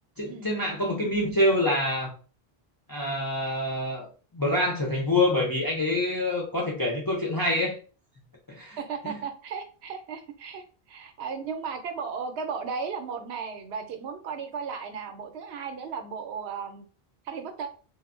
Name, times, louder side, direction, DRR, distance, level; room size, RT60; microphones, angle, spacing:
voice 1, 0.2-2.1 2.9-4.1 4.3-7.8 8.5-8.8 9.0-9.1, left 1 dB, 35° left, 0.3 m, -26 dB
voice 2, 8.8-16.9 17.3-17.7, right 5 dB, 85° right, 0.8 m, -35 dB
3.2 x 2.0 x 2.4 m
omnidirectional pair, 1.1 m